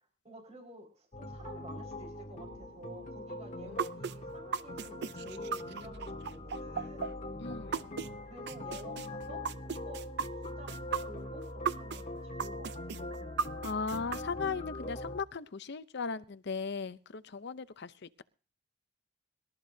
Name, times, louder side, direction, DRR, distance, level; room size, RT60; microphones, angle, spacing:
voice 1, 0.2-7.2 8.3-10.2 10.6-10.7 11.1-13.5, right 1 dB, 35° right, 0 dB, 4.8 m, -51 dB
sound 1, 1.1-15.2, left 1 dB, 35° left, 2.0 m, -42 dB
sound 2, 3.8-8.1 8.5-12.0 12.4-14.2, right 6 dB, 55° right, 0.5 m, -35 dB
voice 2, 7.4-7.9 13.6-18.2, left 5 dB, 55° left, 14 dB, 0.6 m, -38 dB
25.0 x 13.0 x 2.7 m, 0.39 s
head